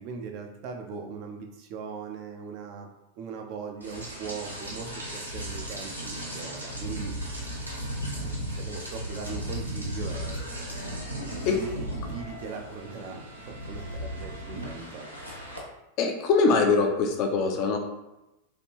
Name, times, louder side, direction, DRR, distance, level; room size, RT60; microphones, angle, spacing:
voice 1, 0.0-2.9 3.2-7.1 8.2-10.4 11.5-15.1, right 5 dB, 45° right, 3 dB, 0.5 m, -40 dB
Rain, 3.8-15.6, equal, 85° right, 0.7 m, -36 dB
voice 2, 16.0-17.8, left 4 dB, 40° left, 3 dB, 0.5 m, -23 dB
3.2 x 2.5 x 2.9 m, 0.94 s
figure-of-eight pair, 90°, 0 cm